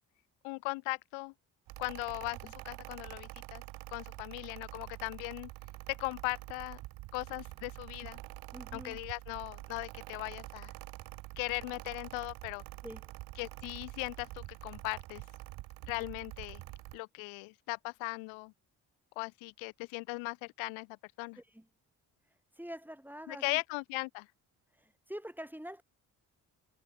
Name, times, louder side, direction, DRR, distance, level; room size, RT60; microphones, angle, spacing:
voice 1, 0.4-1.3 1.8-2.4 2.6-3.6 3.9-5.5 5.9-6.8 7.1-8.2 8.7-10.7 11.4-12.6 13.4-15.2 15.9-16.6 16.9-18.5 19.2-20.9 21.2-21.4 23.3-24.3, left 28 dB, 85° left, 0.7 m, -38 dB
Mechanical fan, 1.7-17.0, right 20 dB, 80° right, 1.0 m, -47 dB
voice 2, 8.5-9.0 12.8-13.1 21.4-21.7 22.5-23.6 24.7-25.8, equal, 5° right, 5.6 m, -45 dB
hypercardioid pair, 40°, 46 cm